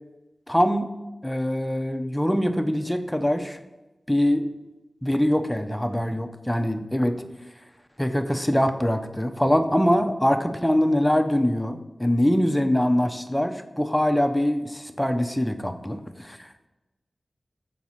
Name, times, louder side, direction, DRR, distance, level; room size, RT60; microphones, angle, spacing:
voice 1, 0.5-0.9 1.2-3.6 4.1-4.4 5.0-7.2 8.0-16.7, equal, 10° left, 8 dB, 0.7 m, -23 dB
7.1 x 4.7 x 5.7 m, 1.1 s
wide cardioid pair, 60°, 0 cm